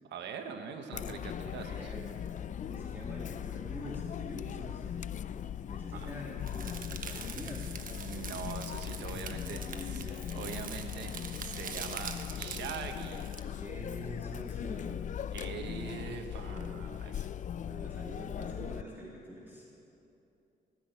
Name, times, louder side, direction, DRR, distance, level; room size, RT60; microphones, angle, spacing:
voice 1, 0.0-1.9 5.9-6.1 7.9-9.7 9.9-10.1 10.3-13.3 15.3-17.3, right 6 dB, 80° right, 5 dB, 1.1 m, -42 dB
Chatter, 0.9-18.8, left 9 dB, 45° left, 0.4 m, -39 dB
voice 2, 1.5-2.1 2.6-5.0 5.7-7.8 9.1-10.7 13.5-15.0 16.1-16.7 17.7-19.6, equal, 10° right, -5 dB, 2.3 m, -46 dB
sound 1, 6.5-13.4, right 6 dB, 50° right, 1.1 m, -44 dB
18.0 x 6.2 x 9.0 m, 2.8 s
cardioid pair, 75°, 18 cm